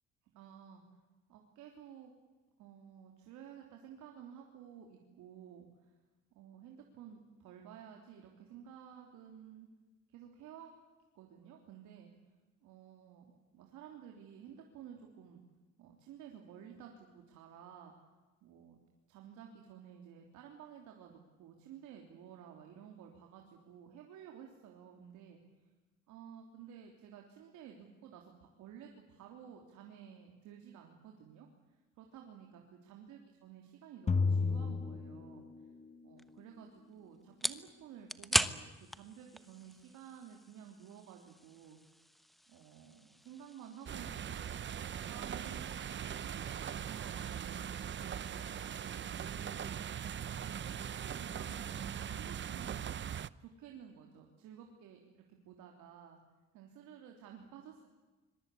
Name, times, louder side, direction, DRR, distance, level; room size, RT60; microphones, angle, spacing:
voice 1, 0.3-0.8 1.3-2.1 2.6-5.9 6.3-9.7 10.1-10.7 11.1-12.1 12.6-15.4 15.8-17.9 18.4-18.8 19.1-25.7 26.1-28.3 28.6-35.5 36.0-41.8 42.5-47.7 48.3-49.7 50.4-52.9 53.4-56.2 56.5-57.9, right 8 dB, 85° right, 1 dB, 3.4 m, -53 dB
sound 1, 34.1-35.9, left 4 dB, 25° left, 1.0 m, -32 dB
sound 2, 36.2-49.4, equal, ahead, 1.2 m, -42 dB
sound 3, 43.9-53.3, right 9 dB, 40° right, 0.8 m, -40 dB
26.0 x 22.5 x 8.5 m, 1.2 s
cardioid pair, 100°, 29 cm